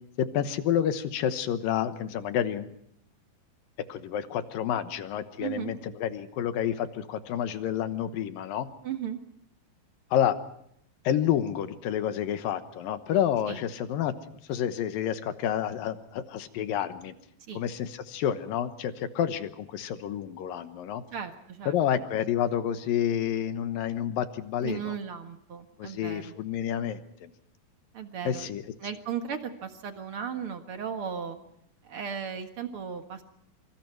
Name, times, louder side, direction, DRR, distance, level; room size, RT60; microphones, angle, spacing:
voice 1, 0.2-2.7 3.9-8.7 10.1-10.4 11.0-14.1 14.5-17.1 17.6-21.0 21.7-25.0 25.8-27.3 28.3-28.6, left 10 dB, 70° left, 11 dB, 2.7 m, -29 dB
voice 2, 5.4-5.7 8.8-9.2 13.5-13.6 17.5-17.6 21.1-21.7 24.6-26.3 27.9-28.5 28.8-31.4 31.8-33.2, right 7 dB, 50° right, 7 dB, 1.8 m, -36 dB
26.5 x 25.0 x 4.6 m, 0.72 s
omnidirectional pair, 4.4 m